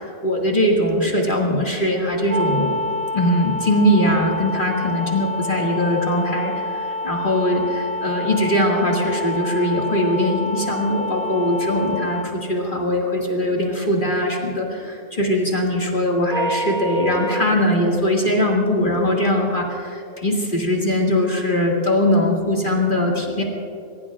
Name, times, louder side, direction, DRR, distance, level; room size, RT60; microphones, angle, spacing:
voice 1, 0.2-2.8 3.1-23.4, left 1 dB, 40° left, -2 dB, 2.3 m, -21 dB
sound 1, 2.3-12.3 16.3-17.5, left 1 dB, 40° right, 0.8 m, -27 dB
23.0 x 21.0 x 2.5 m, 2.5 s
omnidirectional pair, 1.3 m